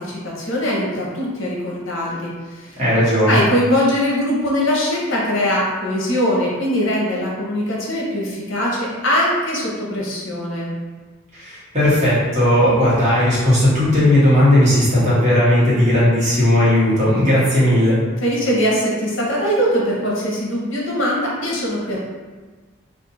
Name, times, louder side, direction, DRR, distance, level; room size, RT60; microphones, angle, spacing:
voice 1, 0.0-2.8 3.3-10.7 18.2-22.0, equal, 70° left, -4 dB, 0.8 m, -21 dB
voice 2, 2.8-3.4 11.3-18.0, left 1 dB, 35° right, -9 dB, 1.2 m, -16 dB
2.6 x 2.4 x 4.0 m, 1.4 s
head